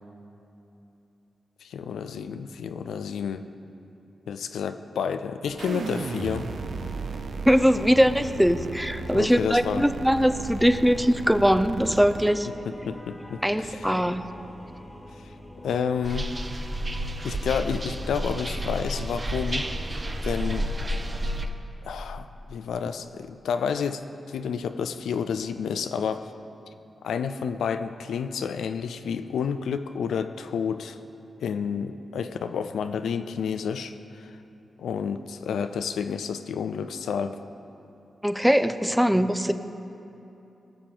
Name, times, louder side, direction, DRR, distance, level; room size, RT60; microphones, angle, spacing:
voice 1, 1.6-3.5 4.3-6.5 9.1-9.9 12.4-13.9 15.6-16.3 17.2-19.7 20.2-20.7 21.8-24.0 24.3-26.3 27.0-31.0 31.4-34.4 34.8-37.4, left 7 dB, 85° left, 9 dB, 0.4 m, -30 dB
sound 1, 5.5-21.5, left 1 dB, 20° left, 1.3 m, -45 dB
sound 2, 5.6-12.3, right 4 dB, 75° right, 0.6 m, -35 dB
voice 2, 7.5-12.5 13.4-14.3 38.2-39.5, equal, ahead, 10 dB, 0.6 m, -21 dB
sound 3, 16.0-21.5, right 1 dB, 35° right, 0.8 m, -30 dB
19.0 x 6.8 x 3.8 m, 2.9 s
supercardioid pair, 45°, 0 cm